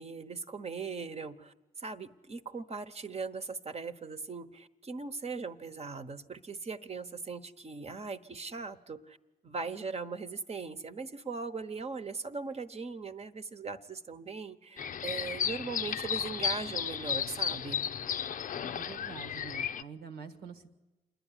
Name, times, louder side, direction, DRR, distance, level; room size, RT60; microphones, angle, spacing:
voice 1, 0.0-9.2 9.4-17.9, right 4 dB, 40° right, 9 dB, 1.1 m, -39 dB
sound 1, 14.8-19.8, left 8 dB, 55° left, 0.6 m, -34 dB
voice 2, 18.7-20.7, right 6 dB, 85° right, 7 dB, 1.5 m, -46 dB
27.0 x 10.5 x 9.9 m, 1.1 s
supercardioid pair, 50°, 16 cm